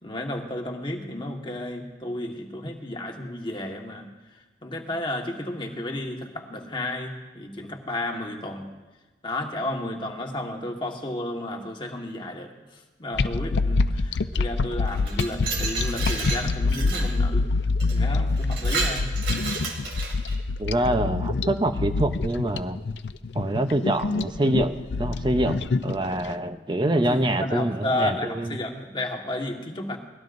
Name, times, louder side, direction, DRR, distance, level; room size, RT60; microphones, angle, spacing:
voice 1, 0.0-4.1 4.6-8.7 9.2-12.5 13.0-17.5 17.9-19.1 26.9-30.0, left 1 dB, 30° left, 2 dB, 1.5 m, -32 dB
sound 1, 13.1-26.3, left 3 dB, 80° left, 0.5 m, -26 dB
Glass, 14.9-17.1 17.8-18.0 18.4-20.4, right 4 dB, 80° right, 2.9 m, -31 dB
voice 2, 20.6-22.8 23.3-24.7 25.0-28.6, right 1 dB, 25° right, 8 dB, 0.7 m, -25 dB
23.0 x 18.5 x 2.6 m, 1.2 s
head